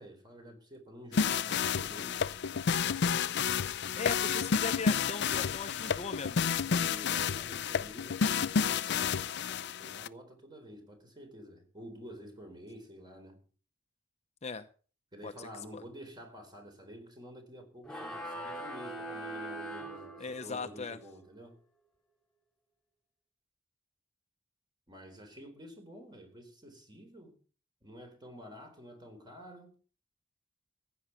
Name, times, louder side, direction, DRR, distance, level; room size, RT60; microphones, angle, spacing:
voice 1, 0.0-2.3 6.6-13.4 15.1-21.6 24.9-27.3 27.8-29.7, equal, 25° right, 4.2 m, -50 dB
sound 1, 1.1-10.1, left 6 dB, 60° left, 0.5 m, -30 dB
voice 2, 4.0-6.6 14.4-14.7 15.2-15.5 15.7-15.8 20.2-21.0, left 4 dB, 35° left, 0.8 m, -39 dB
sound 2, 17.8-20.7, right 1 dB, 5° left, 3.0 m, -41 dB
15.5 x 9.4 x 5.8 m
head